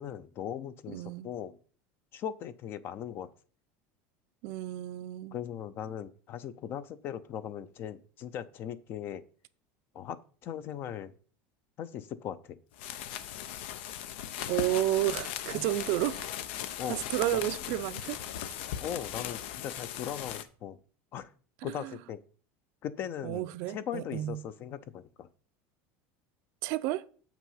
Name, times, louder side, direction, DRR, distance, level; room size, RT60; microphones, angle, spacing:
voice 1, 0.0-1.6 2.1-3.3 5.3-9.2 9.9-11.1 11.8-12.6 16.8-17.0 17.3-17.4 18.8-20.8 21.1-21.3 21.6-22.2 22.8-25.3, left 9 dB, 35° left, 0.5 m, -39 dB
voice 2, 0.9-1.3 4.4-5.4 14.5-16.3 16.8-18.2 21.6-21.9 23.2-24.4 26.6-27.0, right 14 dB, 55° right, 0.5 m, -31 dB
sound 1, 12.7-20.4, left 10 dB, 80° left, 0.8 m, -38 dB
7.7 x 6.0 x 5.6 m
cardioid pair, 165°, 6 cm